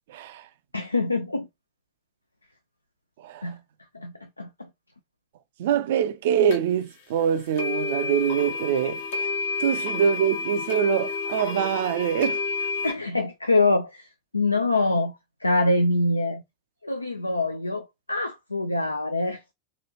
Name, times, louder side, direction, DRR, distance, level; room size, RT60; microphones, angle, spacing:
voice 1, 0.1-0.5 3.2-3.5 5.6-9.3 9.6-12.4, right 8 dB, 55° right, 0.4 m, -24 dB
voice 2, 0.7-1.5 3.4-3.6 3.9-4.7 9.7-9.8 12.8-14.1 14.3-15.2 15.4-16.4 16.8-19.4, left 2 dB, 85° left, 0.3 m, -25 dB
sound 1, 6.5-6.6 7.5-12.9, left 4 dB, 60° left, 0.7 m, -30 dB
3.1 x 2.3 x 3.0 m
figure-of-eight pair, 90°, 0 cm